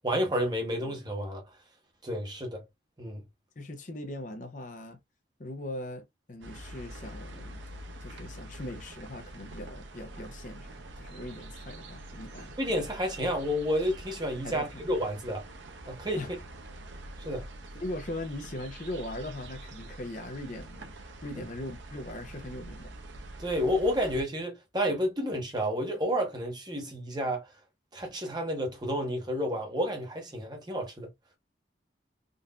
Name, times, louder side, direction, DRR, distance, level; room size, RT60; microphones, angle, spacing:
voice 1, 0.0-1.4 2.0-2.6 3.0-3.2 12.6-15.4 15.9-16.2 17.2-17.5 23.4-27.5 27.9-31.1, equal, 25° right, 0.9 m, -30 dB
voice 2, 3.6-5.0 5.4-7.6 8.0-12.6 14.4-14.8 16.2-16.3 17.7-23.0, left 1 dB, 45° left, 0.6 m, -40 dB
sound 1, 6.4-24.2, right 1 dB, 85° right, 0.7 m, -45 dB
3.8 x 2.5 x 2.3 m
head